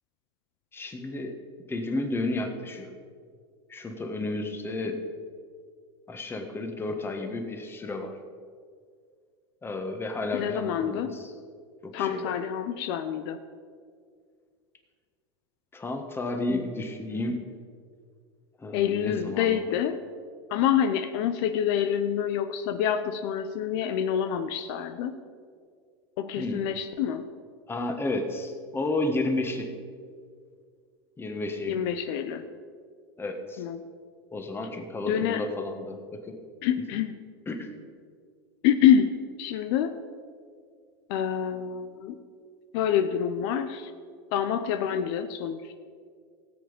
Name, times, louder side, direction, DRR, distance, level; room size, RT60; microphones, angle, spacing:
voice 1, 0.7-1.3 1.7-2.9 3.7-5.0 6.1-8.1 9.6-11.2 11.8-12.3 15.7-17.4 18.6-19.6 26.4-26.6 27.7-29.7 31.2-31.8 33.2-33.6 34.3-36.4 37.5-37.7, left 2 dB, 15° left, 5 dB, 1.5 m, -32 dB
voice 2, 10.3-11.1 11.9-13.4 18.7-20.0 20.5-25.2 26.2-27.2 31.7-32.4 33.6-33.9 35.1-35.4 36.6-37.2 38.6-39.1 39.4-40.0 41.1-42.2 42.7-43.9 44.3-45.8, left 9 dB, 65° left, 9 dB, 0.7 m, -26 dB
17.5 x 7.8 x 5.2 m, 2.1 s
supercardioid pair, 120°, 14 cm